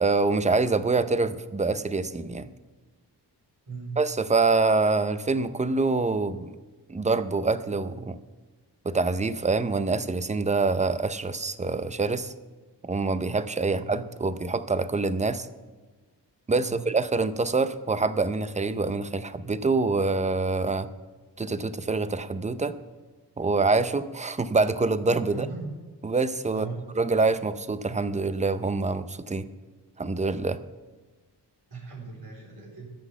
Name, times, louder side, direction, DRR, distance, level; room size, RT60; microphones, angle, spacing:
voice 1, 0.0-2.5 4.0-6.5 6.9-8.2 8.8-12.3 12.8-15.5 16.5-20.9 21.4-22.8 23.4-25.5 26.0-29.5 30.0-30.6, right 3 dB, 15° right, 12 dB, 0.5 m, -25 dB
voice 2, 25.3-25.7 26.5-26.8 31.7-32.9, right 4 dB, 60° right, -5 dB, 3.9 m, -38 dB
13.5 x 6.0 x 8.2 m, 1.3 s
wide cardioid pair, 110°, 41 cm